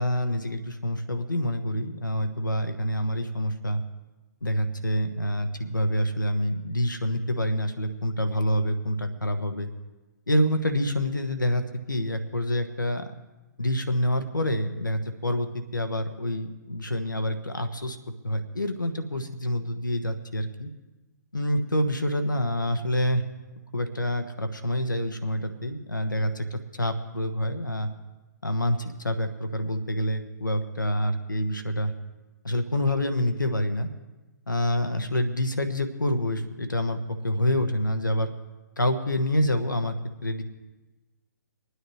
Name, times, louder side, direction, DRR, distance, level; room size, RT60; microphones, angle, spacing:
voice 1, 0.0-3.8 4.4-9.7 10.3-11.6 11.9-13.1 13.6-18.0 18.2-20.7 21.3-23.2 23.7-27.9 28.4-31.9 32.4-33.9 34.5-38.3 38.8-39.9 40.2-40.4, left 1 dB, 90° left, 8 dB, 1.1 m, -27 dB
26.5 x 9.6 x 3.2 m, 1.2 s
figure-of-eight pair, 130°, 10 cm